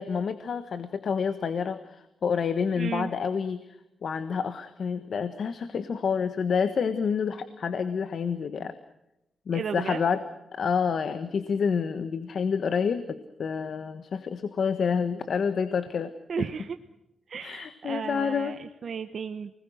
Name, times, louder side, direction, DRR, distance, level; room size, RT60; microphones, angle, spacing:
voice 1, 0.0-3.6 4.0-8.8 9.5-10.2 10.5-16.1 17.4-18.5, left 6 dB, 60° left, 11 dB, 1.4 m, -28 dB
voice 2, 2.8-3.1 9.5-10.0 16.3-16.8 17.3-19.5, right 6 dB, 55° right, 8 dB, 1.0 m, -34 dB
29.5 x 21.0 x 6.3 m, 0.88 s
cardioid pair, 115°, 0 cm